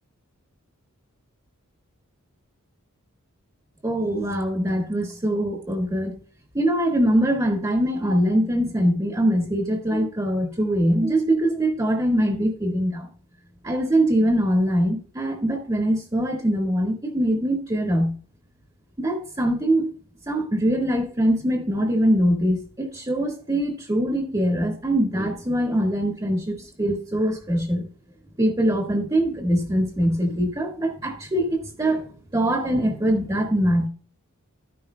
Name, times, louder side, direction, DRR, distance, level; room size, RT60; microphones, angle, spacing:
voice 1, 3.8-6.2 6.5-13.1 13.6-18.1 19.0-19.9 20.3-27.8 28.4-32.1 32.3-33.9, right 1 dB, 20° right, 1 dB, 1.7 m, -23 dB
13.0 x 10.5 x 2.2 m, 0.41 s
head